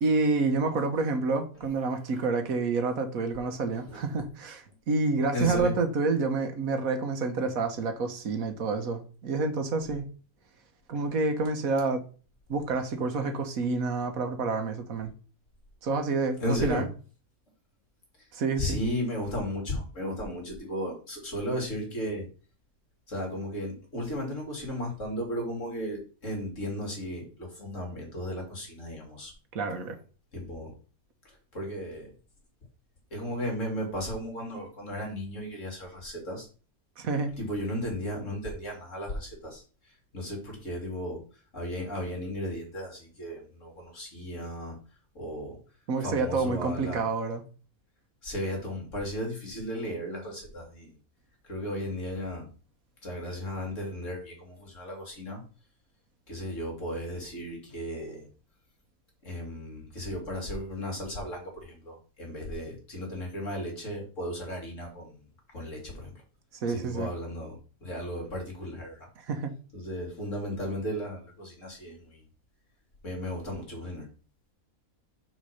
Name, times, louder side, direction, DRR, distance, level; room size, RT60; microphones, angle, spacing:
voice 1, 0.0-10.0 10.9-12.0 12.5-15.1 15.8-16.9 18.3-18.8 29.5-29.9 37.0-37.3 45.9-47.4 66.6-67.1 69.3-69.5, right 3 dB, 75° right, 1.5 m, -28 dB
voice 2, 5.3-5.8 16.4-16.8 18.6-22.3 23.1-29.3 30.3-30.7 31.5-32.1 33.1-36.5 37.4-39.6 40.1-41.2 41.5-44.8 45.1-45.6 46.0-47.0 48.2-50.9 51.4-52.5 53.0-55.4 56.3-58.3 59.2-65.2 65.5-66.1 66.7-69.1 69.7-72.2 73.0-74.1, equal, 55° left, 2.9 m, -35 dB
6.3 x 4.8 x 5.7 m
omnidirectional pair, 1.5 m